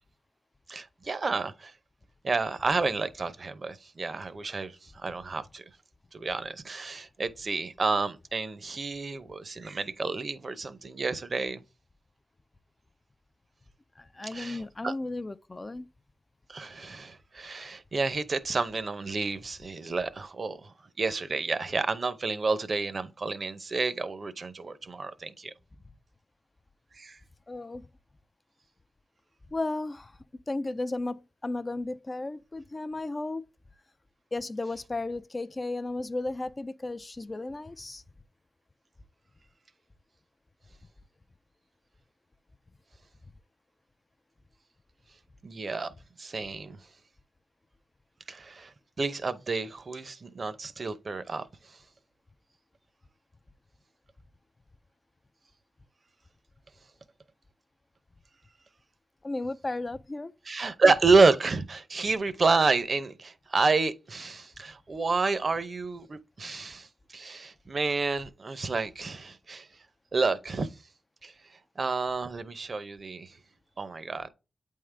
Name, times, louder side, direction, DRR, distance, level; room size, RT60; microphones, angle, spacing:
voice 1, 0.7-1.7 2.2-5.6 6.1-11.6 14.3-14.9 16.5-20.7 21.0-25.5 27.0-27.2 45.4-45.9 46.2-46.8 48.3-48.7 49.0-51.4 60.5-66.9 67.1-69.7 70.1-70.7 71.2-71.3 71.8-73.3 73.8-74.3, right 4 dB, 50° right, 0.7 m, -29 dB
voice 2, 14.0-15.9 27.5-27.9 29.5-30.1 30.5-33.4 34.3-38.0 59.2-60.3 60.8-60.9, left 2 dB, 30° left, 0.4 m, -34 dB
8.5 x 3.7 x 3.3 m
cardioid pair, 75°, 0 cm